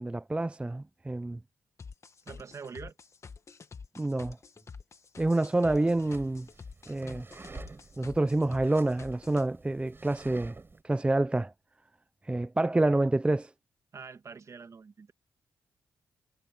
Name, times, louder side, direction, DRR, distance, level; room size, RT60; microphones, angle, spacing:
voice 1, 0.0-1.4 4.0-4.4 5.2-6.5 6.9-7.3 8.0-10.6 10.8-11.5 12.2-13.5, right 2 dB, 15° right, 0.5 m, -27 dB
sound 1, 1.8-9.4, left 5 dB, 50° left, 1.7 m, -47 dB
voice 2, 2.3-3.0 13.9-15.1, right 5 dB, 55° right, 2.2 m, -44 dB
sound 2, 5.7-10.8, right 3 dB, 35° right, 5.2 m, -49 dB
supercardioid pair, 50°, 6 cm